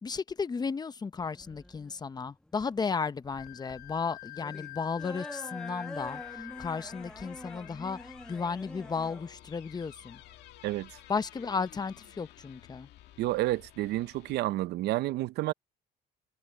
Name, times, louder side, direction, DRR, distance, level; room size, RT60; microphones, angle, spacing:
voice 1, 0.0-6.2 6.6-10.2 11.1-12.9, left 5 dB, 25° left, 0.8 m, -34 dB
sound 1, 1.2-11.2, left 1 dB, 5° left, 1.3 m, -46 dB
Wind instrument woodwind instrument, 3.3-7.0, left 22 dB, 60° left, 1.1 m, -45 dB
sound 2, 6.0-14.4, left 14 dB, 80° left, 2.0 m, -53 dB
voice 2, 10.6-11.0 13.2-15.5, right 16 dB, 80° right, 0.7 m, -30 dB
cardioid pair, 110°, 17 cm